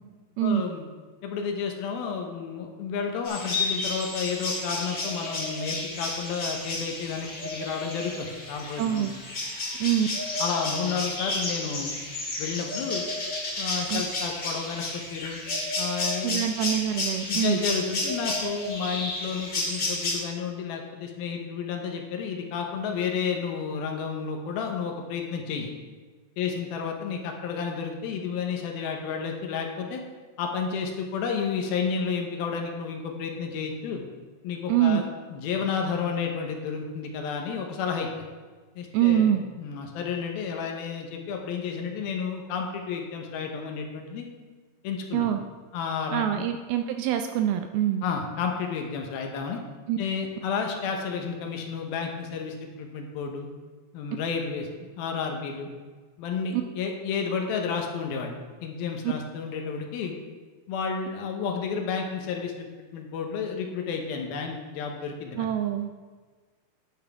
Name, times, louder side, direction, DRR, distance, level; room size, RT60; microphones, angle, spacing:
voice 1, 0.4-0.8 1.2-9.1 10.4-11.9 12.4-13.1 13.6-15.4 15.8-16.5 17.3-25.7 26.4-30.0 30.4-34.0 34.4-35.0 35.3-38.1 38.8-39.3 39.6-44.3 44.8-45.3 45.7-46.5 48.0-49.6 50.0-53.5 53.9-54.7 55.0-55.7 56.2-60.1 60.7-62.7 62.9-65.5, left 6 dB, 70° left, 3 dB, 2.6 m, -31 dB
sound 1, 3.2-20.1, left 2 dB, 35° left, 2.6 m, -31 dB
voice 2, 8.8-9.1 9.8-10.1 13.9-14.0 16.2-17.6 34.7-35.0 38.9-39.4 45.1-45.4 46.1-48.0 49.9-50.0 56.5-56.6 65.4-66.0, right 11 dB, 85° right, 7 dB, 2.2 m, -25 dB
10.5 x 10.5 x 3.5 m, 1.4 s
omnidirectional pair, 4.9 m